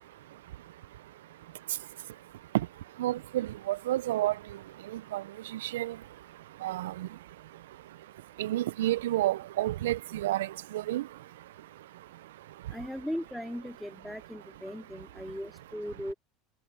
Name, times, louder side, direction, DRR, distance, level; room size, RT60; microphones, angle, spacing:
voice 1, 3.0-4.3 5.1-5.2 5.6-5.9 6.6-7.1 8.4-10.5 10.7-11.0, right 15 dB, 75° right, 0.5 m, -30 dB
voice 2, 12.7-16.1, equal, ahead, 4.1 m, -38 dB
hypercardioid pair, 80°, 0 cm